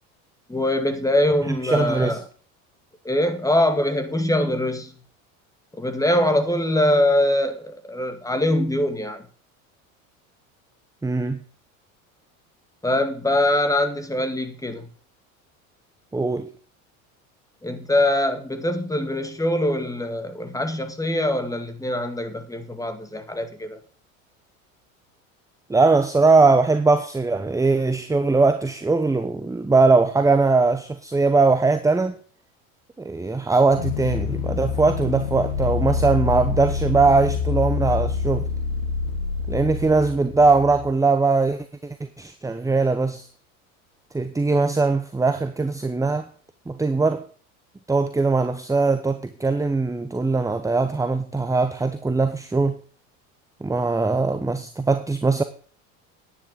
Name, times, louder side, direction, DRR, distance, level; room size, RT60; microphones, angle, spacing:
voice 1, 0.5-2.2 3.0-4.9 5.7-9.2 12.8-14.9 17.6-23.8, left 1 dB, 10° left, 2.2 m, -23 dB
voice 2, 1.6-2.2 11.0-11.4 16.1-16.5 25.7-32.1 33.0-38.5 39.5-43.3 44.1-46.3 46.7-47.2 47.9-52.8 53.6-55.4, right 3 dB, 10° right, 0.9 m, -20 dB
sound 1, 33.7-40.9, left 5 dB, 85° left, 2.8 m, -26 dB
10.0 x 9.8 x 5.2 m
hypercardioid pair, 85°, 41 cm